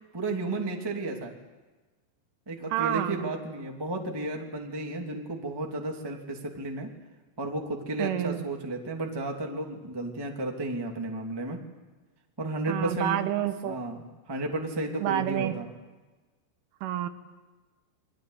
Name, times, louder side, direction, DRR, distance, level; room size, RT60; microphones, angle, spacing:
voice 1, 0.1-1.3 2.4-6.9 7.4-11.6 12.4-13.2 13.6-14.0 14.3-15.7, right 2 dB, 10° right, 1 dB, 1.4 m, -33 dB
voice 2, 2.7-3.3 8.0-8.5 12.7-13.8 15.0-15.5 16.8-17.1, right 12 dB, 85° right, 9 dB, 3.9 m, -29 dB
29.5 x 22.5 x 8.3 m, 1.2 s
omnidirectional pair, 5.5 m